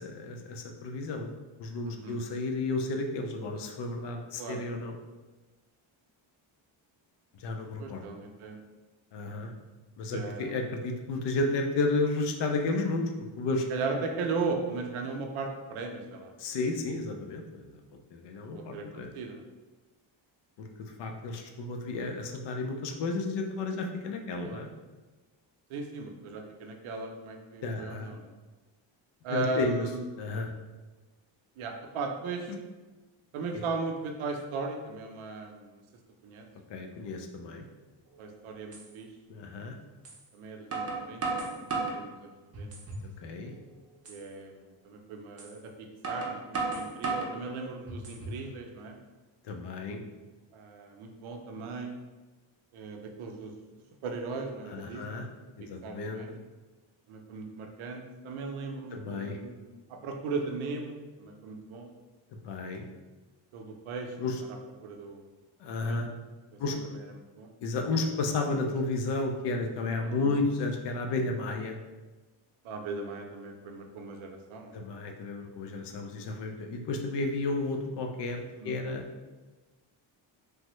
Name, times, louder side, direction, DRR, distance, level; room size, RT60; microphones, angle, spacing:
voice 1, 0.0-1.3 1.6-5.0 7.4-8.0 9.1-9.5 10.0-13.7 16.4-17.8 18.1-19.1 20.6-24.7 27.6-28.1 29.3-29.9 30.2-30.5 36.7-37.7 39.3-39.8 43.2-43.5 49.4-50.0 54.7-55.3 55.6-56.4 58.9-59.4 62.4-62.9 64.2-64.4 65.6-66.1 66.6-66.8 67.6-71.8 74.7-79.0, left 3 dB, 60° left, 3 dB, 0.5 m, -32 dB
voice 2, 1.8-2.2 4.4-4.6 7.8-8.6 10.1-10.5 13.7-16.3 18.5-19.4 24.4-24.6 25.7-28.3 29.2-30.0 31.6-32.5 33.3-35.8 36.2-36.4 38.2-39.1 40.3-42.7 44.1-49.0 50.5-51.9 52.7-53.5 54.0-55.2 55.6-56.3 57.1-61.9 63.5-64.2 64.5-65.3 65.9-66.1 66.8-67.5 70.0-70.3 72.6-74.8 78.6-78.8, right 4 dB, 85° right, 3 dB, 0.6 m, -37 dB
sound 1, 38.1-38.2 38.7-38.9 40.0-40.2 40.7-42.0 42.5-43.1 43.5-43.6 44.0-44.2 45.4-45.5 46.0-47.4 47.9-48.4, right 3 dB, 30° right, 0.6 m, -34 dB
3.3 x 2.1 x 3.0 m, 1.2 s
cardioid pair, 120°, 48 cm